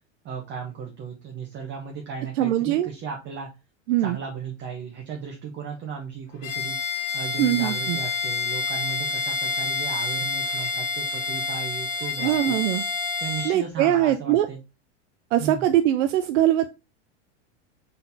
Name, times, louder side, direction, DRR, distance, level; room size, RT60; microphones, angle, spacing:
voice 1, 0.2-3.5 4.0-12.6 13.2-14.6 15.4-15.7, right 6 dB, 30° right, 0 dB, 0.9 m, -35 dB
voice 2, 2.4-2.9 3.9-4.2 7.4-8.0 12.2-12.8 13.4-14.5 15.3-16.7, right 12 dB, 80° right, 9 dB, 0.5 m, -22 dB
Bowed string instrument, 6.4-13.6, left 4 dB, 80° left, 1.8 m, -28 dB
4.0 x 4.0 x 2.6 m, 0.28 s
supercardioid pair, 120°, 37 cm